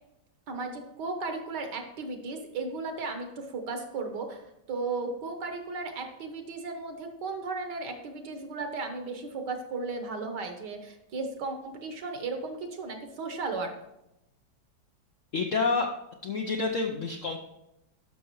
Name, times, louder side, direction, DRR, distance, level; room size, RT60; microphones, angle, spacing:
voice 1, 0.5-13.7, right 3 dB, 65° right, 5 dB, 1.6 m, -35 dB
voice 2, 15.3-15.9 16.2-17.4, left 4 dB, 70° left, 3 dB, 0.7 m, -28 dB
12.0 x 5.8 x 3.1 m, 0.87 s
omnidirectional pair, 2.1 m